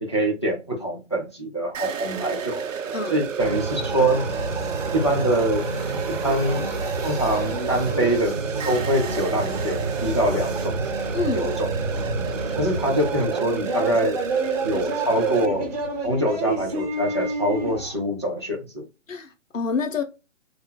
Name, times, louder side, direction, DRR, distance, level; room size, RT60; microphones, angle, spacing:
voice 1, 0.0-2.6 3.1-4.2 4.9-5.7 6.1-6.7 7.0-8.3 8.6-10.8 11.3-11.7 12.5-14.2 14.6-15.7 16.0-18.9, right 1 dB, 25° left, 0.3 m, -24 dB
sound 1, 1.7-15.5, right 6 dB, 90° right, 0.6 m, -31 dB
sound 2, 3.4-17.9, right 3 dB, 30° right, 0.8 m, -29 dB
voice 2, 11.1-11.5 19.1-20.0, left 4 dB, 90° left, 0.9 m, -27 dB
3.2 x 2.1 x 3.6 m
figure-of-eight pair, 145°, 38 cm